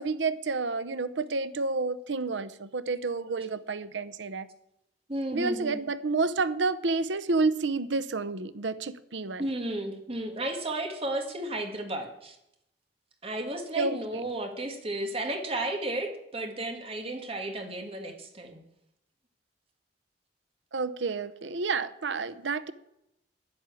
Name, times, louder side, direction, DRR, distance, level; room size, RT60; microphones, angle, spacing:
voice 1, 0.0-4.5 5.3-9.5 13.8-14.0 20.7-22.7, right 3 dB, 85° right, 15 dB, 0.8 m, -29 dB
voice 2, 5.1-5.8 9.4-12.4 13.2-18.6, right 1 dB, 30° right, 4 dB, 1.9 m, -33 dB
11.0 x 10.5 x 8.4 m, 0.82 s
head